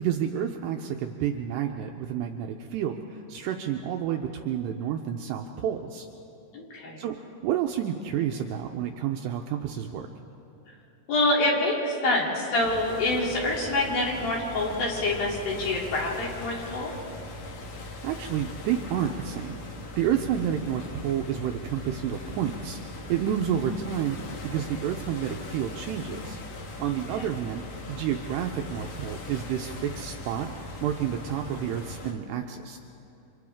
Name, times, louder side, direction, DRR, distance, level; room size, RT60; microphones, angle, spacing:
voice 1, 0.0-6.1 7.0-10.1 18.0-19.6 20.0-22.8 23.1-26.4 26.8-30.5 30.8-32.8, right 9 dB, 85° right, 3 dB, 2.5 m, -30 dB
voice 2, 6.5-7.1 11.1-16.9 27.2-27.3, left 2 dB, 55° left, -4 dB, 4.6 m, -26 dB
sound 1, 12.6-32.1, left 2 dB, 85° left, 1.5 m, -40 dB
29.5 x 25.5 x 3.6 m, 2.9 s
omnidirectional pair, 5.5 m